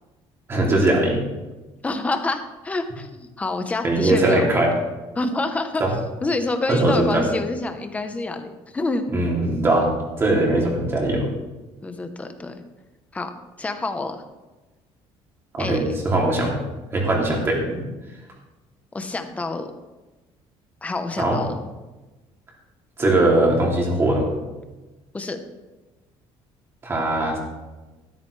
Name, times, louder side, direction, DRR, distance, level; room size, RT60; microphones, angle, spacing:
voice 1, 0.5-1.2 3.8-4.7 5.8-5.9 6.7-7.3 9.1-9.9 10.2-11.3 15.6-16.6 16.9-17.9 21.2-21.4 23.0-24.3 26.8-27.4, right 2 dB, 20° right, -1 dB, 2.7 m, -20 dB
voice 2, 1.8-4.4 5.2-5.8 6.2-9.0 11.8-12.5 13.1-13.3 13.6-14.2 15.6-15.8 18.9-19.7 20.8-21.6 25.1-25.4, left 3 dB, 15° left, 7 dB, 0.9 m, -27 dB
13.5 x 13.0 x 3.3 m, 1.1 s
cardioid pair, 175°, 11 cm